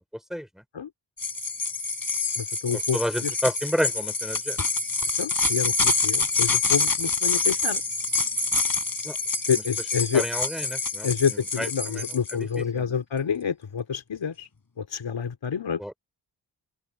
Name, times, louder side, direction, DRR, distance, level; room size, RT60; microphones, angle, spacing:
sound 1, 1.2-12.3, left 3 dB, 45° left, 5.4 m, -26 dB
voice 1, 2.4-3.3 5.2-7.8 9.5-10.2 11.0-14.5 14.8-15.8, left 7 dB, 75° left, 4.0 m, -28 dB
voice 2, 2.9-4.6 9.0-9.2 10.1-11.1 11.6-12.0 12.6-12.8 15.8-15.9, equal, ahead, 5.3 m, -29 dB
cardioid pair, 70°, 45 cm